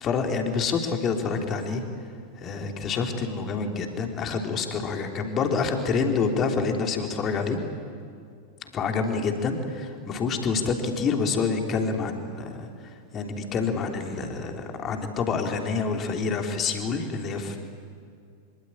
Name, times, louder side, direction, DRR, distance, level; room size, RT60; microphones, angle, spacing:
voice 1, 0.0-1.8 2.4-7.6 8.7-12.7 13.1-17.6, left 5 dB, 30° left, 4 dB, 3.3 m, -27 dB
25.5 x 24.5 x 8.9 m, 2.3 s
figure-of-eight pair, 90°, 0 cm